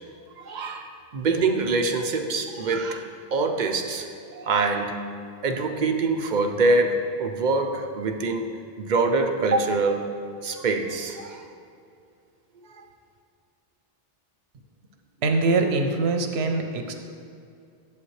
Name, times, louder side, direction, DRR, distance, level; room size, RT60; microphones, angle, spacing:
voice 1, 0.5-4.1 4.3-5.0 5.4-8.5 8.8-10.0 10.4-11.4, right 3 dB, 55° right, 5 dB, 0.6 m, -24 dB
voice 2, 15.2-16.9, right 3 dB, 85° right, 5 dB, 0.9 m, -23 dB
8.7 x 7.1 x 3.2 m, 2.5 s
omnidirectional pair, 1.1 m